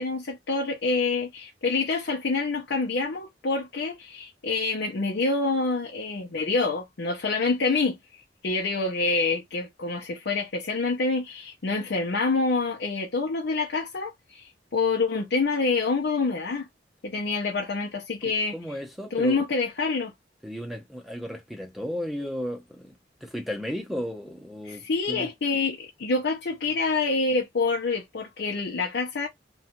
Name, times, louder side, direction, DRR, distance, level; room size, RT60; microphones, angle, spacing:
voice 1, 0.0-8.0 8.4-16.7 17.0-18.8 19.1-20.1 24.6-29.3, left 3 dB, 75° left, 0.6 m, -27 dB
voice 2, 18.5-19.4 20.4-25.3, equal, ahead, 0.7 m, -34 dB
2.9 x 2.3 x 2.8 m
head